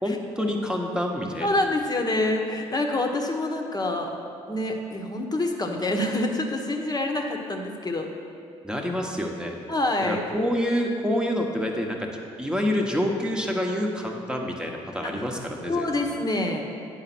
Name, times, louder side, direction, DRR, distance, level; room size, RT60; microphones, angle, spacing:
voice 1, 0.0-1.6 8.6-9.5 10.0-12.1 12.4-15.9, equal, 5° right, 1 dB, 1.3 m, -27 dB
voice 2, 1.4-4.1 4.5-8.1 9.7-10.2 15.0-15.2 15.7-16.7, left 2 dB, 25° left, 2 dB, 1.2 m, -26 dB
8.9 x 4.9 x 6.0 m, 2.5 s
hypercardioid pair, 55°, 15 cm